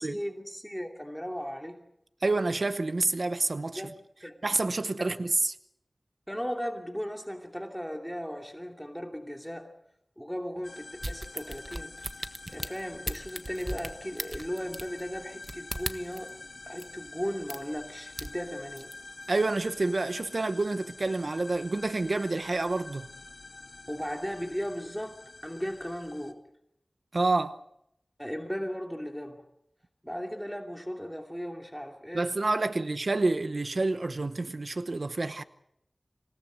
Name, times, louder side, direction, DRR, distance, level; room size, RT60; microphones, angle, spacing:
voice 1, 0.0-1.8 3.7-3.9 4.2-4.3 6.3-9.7 10.2-11.9 12.5-16.3 16.7-18.9 23.9-25.2 25.4-26.4 28.2-29.4 30.0-32.3, equal, ahead, 2.7 m, -36 dB
voice 2, 2.2-3.8 4.4-5.6 19.3-23.1 27.1-27.6 32.1-35.4, right 2 dB, 70° right, 0.9 m, -28 dB
sound 1, 10.6-26.3, left 3 dB, 75° left, 1.9 m, -47 dB
sound 2, 11.0-16.3 16.8-16.9 17.5-17.8 18.1-18.9 19.4-19.5, right 1 dB, 25° right, 1.4 m, -37 dB
27.5 x 17.5 x 8.1 m
wide cardioid pair, 50°, 0 cm